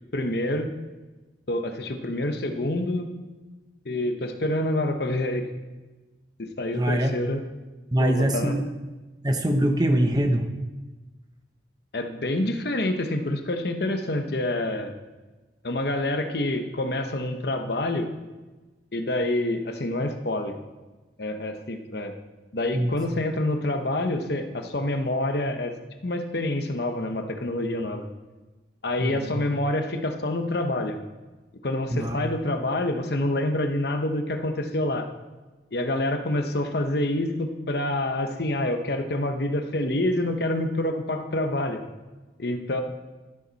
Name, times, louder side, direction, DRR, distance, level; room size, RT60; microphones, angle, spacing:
voice 1, 0.1-0.7 1.5-3.1 3.8-5.5 6.4-7.4 8.0-8.6 11.9-14.9 15.6-18.1 18.9-20.6 21.2-22.1 22.5-25.7 26.0-28.1 28.8-31.0 31.6-35.1 35.7-41.8 42.4-42.8, left 1 dB, 55° left, 6 dB, 0.9 m, -27 dB
voice 2, 6.7-7.1 7.9-8.7 9.2-10.5 22.7-22.9 29.0-29.4 31.9-32.2, right 1 dB, 20° right, 5 dB, 0.9 m, -23 dB
12.0 x 10.5 x 4.1 m, 1.2 s
head